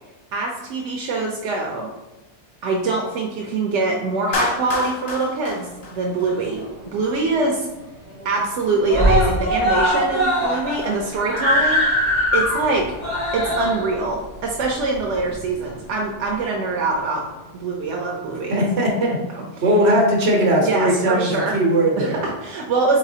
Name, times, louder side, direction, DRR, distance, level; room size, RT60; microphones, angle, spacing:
voice 1, 0.3-1.9 2.6-7.7 8.2-11.9 12.3-13.0 13.3-17.3 17.5-18.6 19.3-19.7 20.6-21.6 22.0-23.0, right 3 dB, 85° right, -1 dB, 0.9 m, -24 dB
Clapping, 4.3-6.6, left 3 dB, 65° left, 0.9 m, -27 dB
Screaming, 6.0-6.9 7.3-7.4 7.7-7.8 8.1-8.6 8.9-15.7 16.5-16.6, equal, 40° left, 1.6 m, -22 dB
voice 2, 18.5-19.2 19.6-22.2, right 1 dB, 65° right, -1 dB, 1.2 m, -19 dB
4.0 x 4.0 x 2.7 m, 1.1 s
omnidirectional pair, 1.2 m